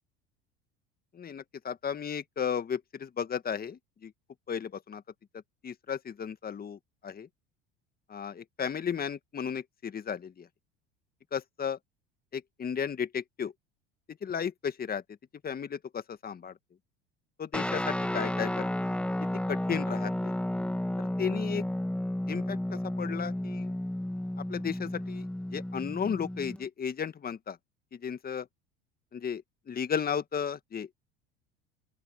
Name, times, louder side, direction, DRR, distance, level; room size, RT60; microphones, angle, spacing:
voice 1, 1.1-4.1 4.5-5.0 5.6-6.8 7.0-7.3 8.1-10.5 11.3-11.8 12.3-13.5 14.2-15.0 15.4-16.5 17.4-18.7 19.5-20.4 21.0-21.6 22.3-23.7 24.5-25.3 25.5-27.6 28.0-28.5 29.1-29.4 29.7-30.9, left 7 dB, 30° left, 1.8 m, -34 dB
Guitar, 17.5-26.6, left 1 dB, 5° left, 1.9 m, -32 dB
open air
hypercardioid pair, 85°, 30 cm